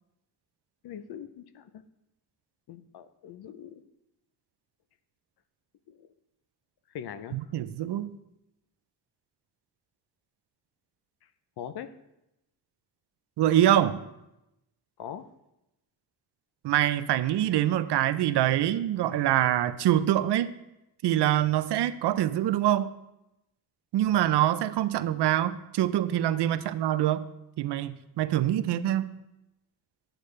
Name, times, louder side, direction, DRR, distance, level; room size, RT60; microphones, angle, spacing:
voice 1, 0.8-1.8 2.7-3.8 5.9-6.1 6.9-7.5 11.6-11.9 15.0-15.3 26.6-26.7, left 9 dB, 70° left, 12 dB, 0.7 m, -41 dB
voice 2, 7.3-8.1 13.4-14.0 16.6-20.5 21.0-22.9 23.9-27.2 27.6-29.1, right 12 dB, 85° right, 13 dB, 0.6 m, -25 dB
11.5 x 8.0 x 3.3 m, 0.91 s
cardioid pair, 135°, 40 cm